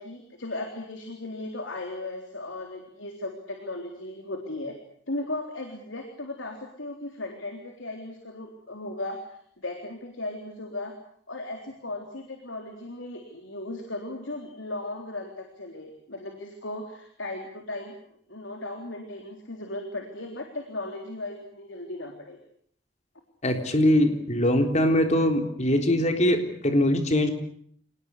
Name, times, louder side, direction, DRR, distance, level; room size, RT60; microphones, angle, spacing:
voice 1, 0.0-4.7 5.1-10.9 11.3-17.9 18.3-22.4, left 2 dB, 80° left, 3 dB, 3.8 m, -36 dB
voice 2, 23.4-27.3, left 1 dB, 35° left, 5 dB, 3.7 m, -22 dB
27.5 x 20.0 x 8.3 m, 0.65 s
head